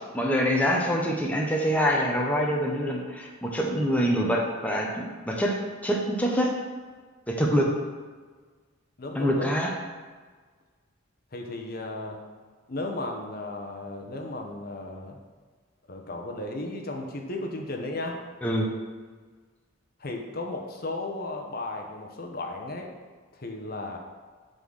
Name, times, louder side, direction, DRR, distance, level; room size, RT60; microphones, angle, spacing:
voice 1, 0.1-5.6 5.8-6.5 7.3-7.7 9.1-9.7 18.4-18.7, equal, 10° left, -1 dB, 1.0 m, -25 dB
voice 2, 9.0-9.5 11.3-12.2 12.7-15.2 15.9-18.2 20.0-22.9 23.4-24.0, left 2 dB, 50° left, 2 dB, 1.0 m, -35 dB
9.0 x 4.0 x 6.4 m, 1.4 s
head